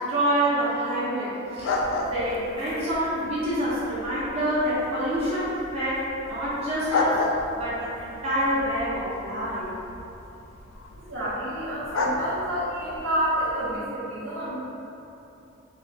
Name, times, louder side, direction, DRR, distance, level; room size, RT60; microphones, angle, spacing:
voice 1, 0.0-1.8 2.1-7.2 7.5-9.7, right 1 dB, 30° right, -11 dB, 0.9 m, -27 dB
sound 1, 1.6-13.8, left 2 dB, 85° left, 0.4 m, -33 dB
voice 2, 11.0-14.5, equal, 80° right, -10 dB, 1.3 m, -29 dB
6.4 x 2.3 x 2.5 m, 2.8 s
head